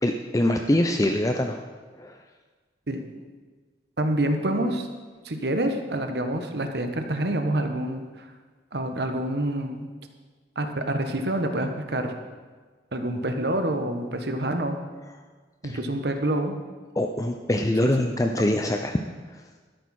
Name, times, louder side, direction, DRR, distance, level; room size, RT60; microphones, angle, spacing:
voice 1, 0.0-1.6 2.0-2.2 15.6-15.8 17.0-19.0 19.3-19.4, left 1 dB, 20° left, 4 dB, 0.5 m, -24 dB
voice 2, 4.0-4.9 5.2-8.3 8.7-9.9 10.5-12.1 12.9-14.8 15.6-16.5 17.8-18.1, right 1 dB, 60° right, 6 dB, 1.2 m, -27 dB
12.5 x 10.5 x 4.3 m, 1.4 s
head